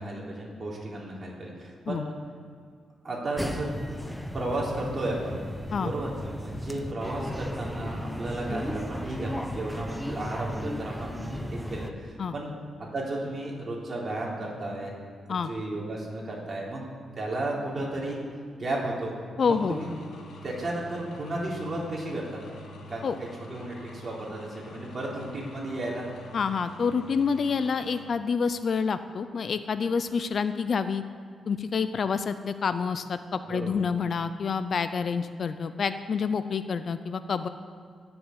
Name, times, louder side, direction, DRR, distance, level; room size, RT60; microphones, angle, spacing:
voice 1, 0.0-2.1 3.0-3.7 4.3-5.4 5.8-6.1 6.4-12.5 12.9-15.0 15.3-16.8 17.2-18.2 18.5-19.1 19.4-19.9 20.4-22.4 22.9-26.1 33.4-33.8, right 2 dB, 35° right, -4 dB, 4.0 m, -33 dB
sound 1, 3.4-11.9, equal, ahead, 0.9 m, -35 dB
sound 2, 19.4-28.0, left 2 dB, 80° left, 2.2 m, -46 dB
voice 2, 19.4-19.8 23.0-23.2 26.3-31.0 31.5-37.5, left 5 dB, 50° left, 11 dB, 0.6 m, -28 dB
17.5 x 7.1 x 8.1 m, 2.2 s
cardioid pair, 115°, 0 cm